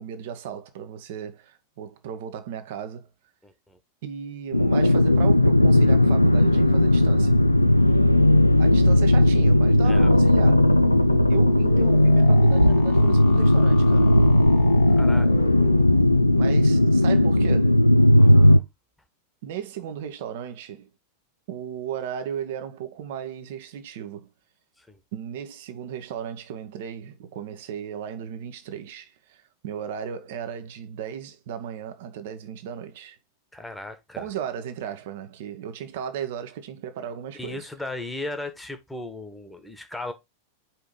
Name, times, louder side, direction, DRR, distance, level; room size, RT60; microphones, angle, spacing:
voice 1, 0.0-3.1 4.0-7.4 8.6-10.6 11.3-14.2 16.4-17.8 19.4-20.9 21.5-24.3 25.1-33.2 34.2-37.7, right 9 dB, 55° right, 1.2 m, -35 dB
voice 2, 3.4-3.8 7.7-8.0 9.8-10.1 14.9-15.5 18.2-18.6 24.8-25.0 33.5-34.3 37.3-40.1, left 2 dB, 5° left, 1.4 m, -37 dB
sound 1, 4.5-18.6, left 1 dB, 85° left, 0.5 m, -17 dB
sound 2, 6.4-16.4, left 7 dB, 50° left, 1.7 m, -31 dB
4.9 x 4.4 x 5.3 m
figure-of-eight pair, 90°, 0 cm